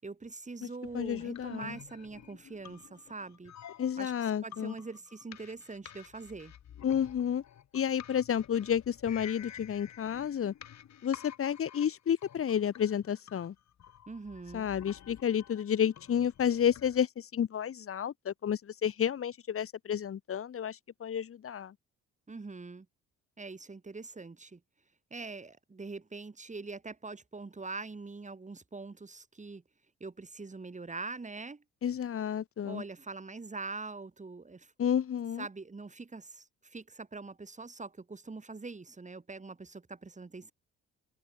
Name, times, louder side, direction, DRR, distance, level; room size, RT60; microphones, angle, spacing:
voice 1, 0.0-3.5 4.0-4.1 4.4-6.5 14.1-14.7 22.3-22.9 23.4-24.6 25.1-29.6 30.0-31.6 32.6-34.7 35.4-40.5, right 3 dB, 25° right, 5.5 m, -43 dB
sound 1, 0.8-17.0, left 10 dB, 65° left, 5.8 m, -51 dB
voice 2, 0.9-1.8 3.8-4.7 6.8-7.4 7.7-10.5 11.0-13.5 14.5-21.7 31.8-32.8 34.8-35.5, left 9 dB, 45° left, 1.2 m, -31 dB
cardioid pair, 90°, 30 cm